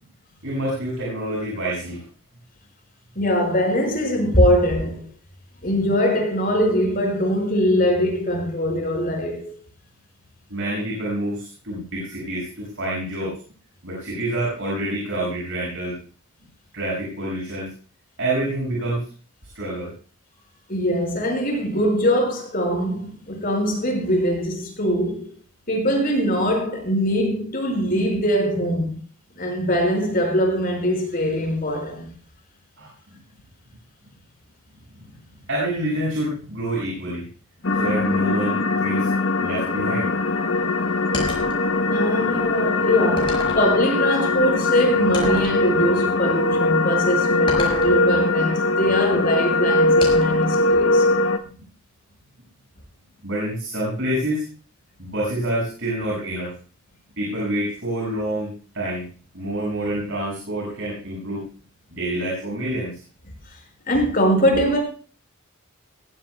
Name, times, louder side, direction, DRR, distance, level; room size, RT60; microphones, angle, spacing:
voice 1, 0.4-2.0 10.5-13.4 13.8-15.9 16.7-17.7 18.2-19.0 19.5-19.9 32.8-32.9 35.5-37.2 37.8-39.1 39.4-40.1 51.6-51.7 53.2-54.4 55.0-56.5 57.2-58.5 58.7-59.0 59.3-61.4 61.9-62.9, right 1 dB, 65° right, 6.9 m, -27 dB
voice 2, 3.2-5.1 5.6-9.6 20.7-25.3 25.7-28.9 29.4-32.1 41.9-51.1 63.9-64.8, equal, 45° left, 5.8 m, -22 dB
sound 1, 37.6-51.4, left 2 dB, 70° left, 1.1 m, -21 dB
sound 2, 41.1-41.6 42.4-42.5 43.2-43.7 45.1-45.6 47.5-48.0 50.0-50.4, left 2 dB, 25° left, 5.7 m, -29 dB
21.0 x 15.0 x 2.4 m
head